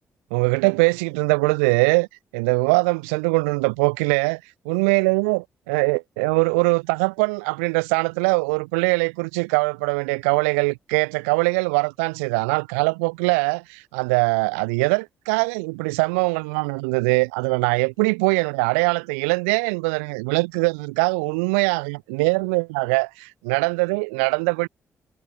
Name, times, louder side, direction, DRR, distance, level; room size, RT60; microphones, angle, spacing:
voice 1, 0.3-2.1 2.3-24.7, right 31 dB, 85° right, 0.9 m, -22 dB
hypercardioid pair, 40°, 7 cm